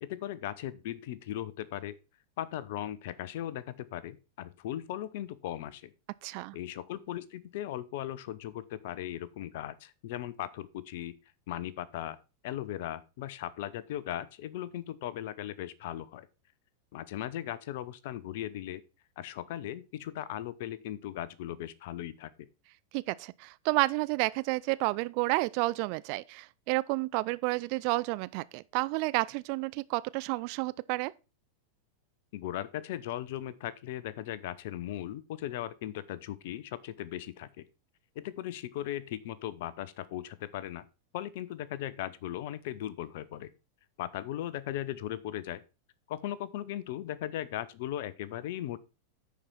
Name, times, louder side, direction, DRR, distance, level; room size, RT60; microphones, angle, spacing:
voice 1, 0.0-2.0 2.4-5.9 6.5-11.1 11.5-12.2 12.4-16.3 16.9-18.8 19.2-22.5 32.3-37.6 38.1-40.9 41.1-43.5 44.0-45.6 46.1-48.8, left 12 dB, 50° left, 0.7 m, -38 dB
voice 2, 6.2-6.6 22.9-31.1, right 22 dB, 45° right, 0.4 m, -30 dB
9.9 x 4.6 x 5.4 m
figure-of-eight pair, 90°, 0 cm